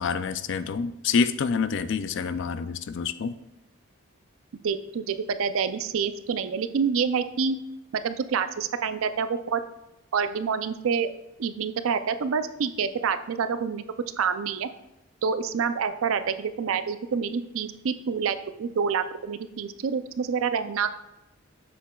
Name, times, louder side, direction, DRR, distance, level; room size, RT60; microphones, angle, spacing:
voice 1, 0.0-3.4, left 5 dB, 55° left, 0.3 m, -27 dB
voice 2, 4.6-7.6 8.0-9.6 10.1-11.1 11.4-13.8 14.2-14.7 15.2-20.9, right 6 dB, 70° right, 0.4 m, -27 dB
7.2 x 7.1 x 2.3 m
head